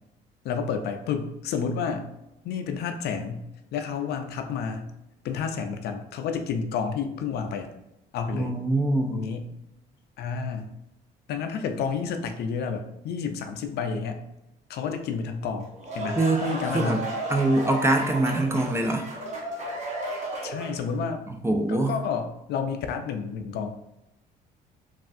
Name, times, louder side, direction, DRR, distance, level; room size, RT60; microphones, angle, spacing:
voice 1, 0.4-2.1 2.4-3.5 3.7-4.9 5.2-7.7 8.1-8.6 9.1-9.5 10.2-10.7 11.3-14.2 14.7-17.1 20.4-21.2 21.7-23.7, left 6 dB, 65° left, 6 dB, 0.4 m, -30 dB
voice 2, 8.3-9.2 16.2-16.4 16.7-17.0 17.3-19.1 21.4-21.9, right 2 dB, 15° right, 3 dB, 0.4 m, -23 dB
sound 1, 15.6-20.9, right 1 dB, 40° right, 1.0 m, -33 dB
3.1 x 2.3 x 2.6 m, 0.88 s
supercardioid pair, 85°, 18 cm